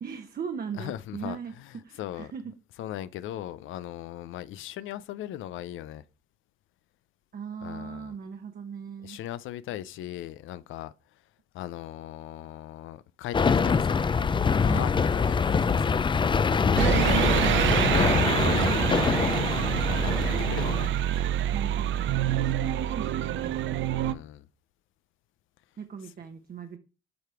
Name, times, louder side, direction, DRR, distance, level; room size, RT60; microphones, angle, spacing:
voice 1, 0.0-1.5 1.8-2.5 7.3-9.2 14.6-15.0 16.7-17.5 20.2-21.0 21.5-23.7 25.8-26.8, right 6 dB, 50° right, 1.0 m, -38 dB
voice 2, 0.8-2.3 2.8-6.0 7.6-8.1 9.0-11.2 11.5-13.4 13.6-14.1 14.6-15.4 15.7-16.4 17.4-19.5 19.8-21.0 24.0-24.5, left 13 dB, 80° left, 0.5 m, -39 dB
sound 1, 13.3-20.9, left 5 dB, 25° left, 0.4 m, -24 dB
sound 2, 16.8-24.1, right 11 dB, 75° right, 0.6 m, -26 dB
7.9 x 5.0 x 4.6 m
cardioid pair, 90°, 20 cm